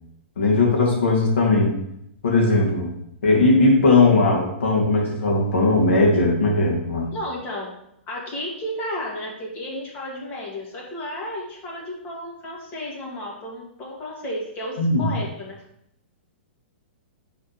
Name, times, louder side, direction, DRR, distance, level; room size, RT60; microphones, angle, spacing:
voice 1, 0.4-1.8 2.2-2.9 3.2-7.1 14.8-15.1, left 2 dB, 80° left, -1 dB, 2.3 m, -18 dB
voice 2, 7.1-7.7 8.1-15.6, left 1 dB, 30° left, -3 dB, 2.2 m, -33 dB
5.3 x 4.3 x 5.1 m, 0.77 s
hypercardioid pair, 140°, 6 cm